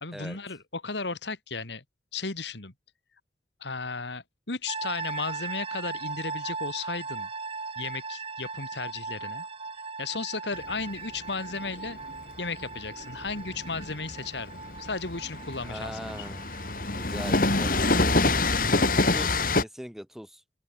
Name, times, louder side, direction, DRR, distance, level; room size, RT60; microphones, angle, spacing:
voice 1, 0.0-1.8 2.1-2.7 3.6-7.3 7.8-9.5 10.0-12.0 12.4-15.9 16.2-16.3 18.7-18.9, left 4 dB, 80° left, 2.2 m, -35 dB
sound 1, 4.7-19.7, right 4 dB, 30° right, 3.8 m, -39 dB
Train, 10.5-19.6, left 2 dB, 50° left, 3.9 m, -26 dB
voice 2, 15.6-16.5 16.8-18.3 19.1-20.4, equal, ahead, 3.7 m, -41 dB
open air
head